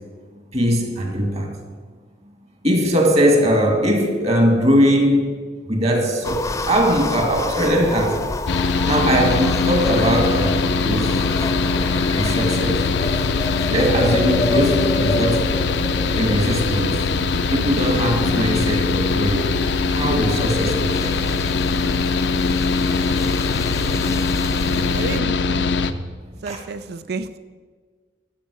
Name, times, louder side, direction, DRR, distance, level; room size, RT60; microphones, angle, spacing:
voice 1, 0.5-1.6 2.6-5.4 5.7-8.3 8.9-11.3 12.1-12.9 13.7-15.5 16.1-17.0 17.5-19.6 19.9-21.2 26.4-26.6, equal, 35° right, 2.0 m, -20 dB
sound 1, 6.2-25.2, left 2 dB, 15° left, 0.5 m, -29 dB
Mechanical fan, 8.5-25.9, left 4 dB, 65° left, 0.6 m, -21 dB
voice 2, 24.6-25.7 26.4-27.4, right 4 dB, 60° right, 0.4 m, -31 dB
13.0 x 5.5 x 8.3 m
head